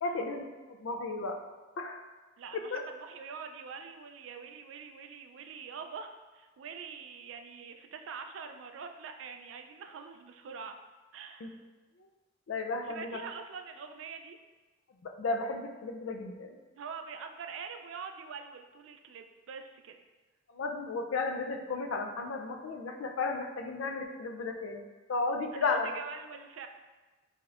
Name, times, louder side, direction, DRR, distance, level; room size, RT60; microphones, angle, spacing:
voice 1, 0.0-1.4 1.8-2.0 2.5-2.8 11.4-11.5 12.0-12.1 12.5-13.2 15.0-16.6 20.5-25.9, left 3 dB, 90° left, 4 dB, 0.4 m, -34 dB
voice 2, 2.4-10.8 11.1-11.6 12.8-14.4 16.8-19.9 25.5-26.7, right 6 dB, 75° right, 6 dB, 0.3 m, -44 dB
4.9 x 2.7 x 2.4 m, 1.2 s
head